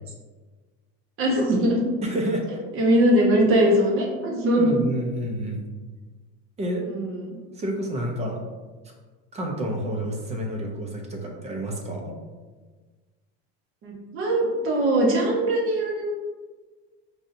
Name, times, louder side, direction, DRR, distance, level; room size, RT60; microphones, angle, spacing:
voice 1, 1.2-1.8 2.7-4.7 6.8-7.4 13.8-16.1, right 1 dB, 40° right, -1 dB, 1.0 m, -21 dB
voice 2, 2.0-2.4 4.6-5.6 6.6-6.8 7.6-8.4 9.3-12.1, right 1 dB, 20° right, 1 dB, 0.6 m, -29 dB
4.6 x 2.8 x 2.6 m, 1.3 s
supercardioid pair, 130°, 33 cm